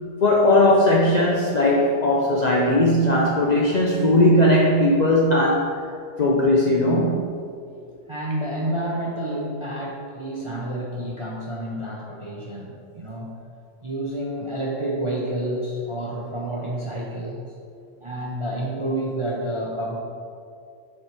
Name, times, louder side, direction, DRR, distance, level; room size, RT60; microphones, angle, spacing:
voice 1, 0.2-5.8 6.2-7.2, left 1 dB, 55° left, -3 dB, 0.5 m, -18 dB
voice 2, 8.1-13.3 13.8-17.5 18.0-20.0, right 1 dB, 40° right, -4 dB, 0.4 m, -29 dB
6.8 x 3.2 x 4.5 m, 2.4 s
omnidirectional pair, 1.3 m